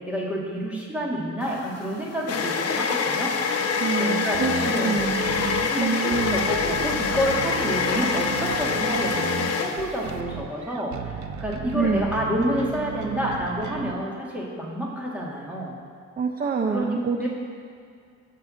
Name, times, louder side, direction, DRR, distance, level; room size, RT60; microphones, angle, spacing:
voice 1, 0.0-3.4 4.0-5.1 5.7-15.7 16.7-17.3, equal, 5° right, -4 dB, 2.0 m, -29 dB
sound 1, 1.5-10.2, left 5 dB, 60° left, 0.9 m, -26 dB
voice 2, 3.8-6.5 11.7-12.1 16.2-17.2, right 5 dB, 30° right, 3 dB, 0.6 m, -27 dB
sound 2, 4.3-14.0, right 8 dB, 80° right, 0.8 m, -35 dB
14.0 x 4.7 x 7.5 m, 2.3 s
wide cardioid pair, 150°, 29 cm